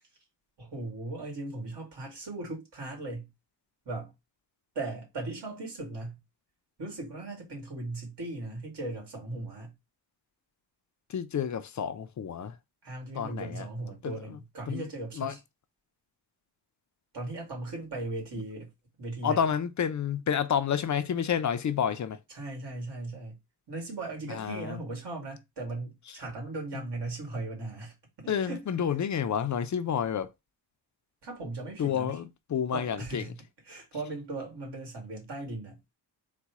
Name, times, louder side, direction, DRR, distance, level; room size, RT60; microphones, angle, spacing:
voice 1, 0.6-3.3 3.9-4.1 4.7-6.2 6.8-9.7 12.8-15.4 17.1-18.7 19.0-19.5 22.3-23.4 23.7-28.7 31.2-32.2 32.7-33.4 33.6-35.9, right 2 dB, 65° right, 2.4 m, -38 dB
voice 2, 11.1-12.6 13.1-13.6 14.0-14.4 14.7-14.9 15.2-15.3 19.2-22.2 24.3-24.8 28.3-30.3 31.8-33.2, left 8 dB, 40° left, 0.5 m, -30 dB
4.1 x 2.2 x 4.6 m
cardioid pair, 105°, 43 cm